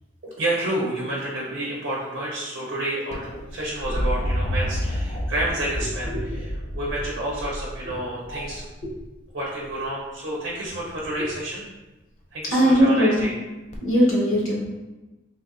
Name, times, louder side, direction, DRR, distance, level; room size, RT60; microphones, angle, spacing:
voice 1, 0.2-8.6 9.3-11.6 12.3-13.4, right 1 dB, 55° right, -5 dB, 0.6 m, -29 dB
sound 1, 3.1-9.0 10.6-11.2 13.7-13.8, equal, 35° left, 0.4 m, -29 dB
voice 2, 12.5-13.2 13.8-14.7, equal, 85° left, -5 dB, 1.2 m, -20 dB
3.2 x 2.8 x 2.5 m, 1.1 s
head